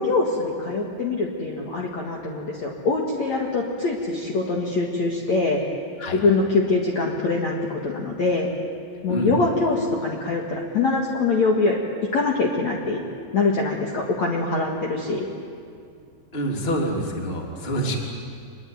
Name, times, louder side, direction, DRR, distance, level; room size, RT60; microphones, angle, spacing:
voice 1, 0.0-5.6 6.1-8.5 9.0-11.8 12.1-13.0 13.3-15.3, left 3 dB, 50° left, -1 dB, 2.6 m, -23 dB
voice 2, 16.3-18.0, right 1 dB, 15° left, 0 dB, 2.7 m, -26 dB
26.0 x 21.5 x 9.5 m, 2.3 s
omnidirectional pair, 5.1 m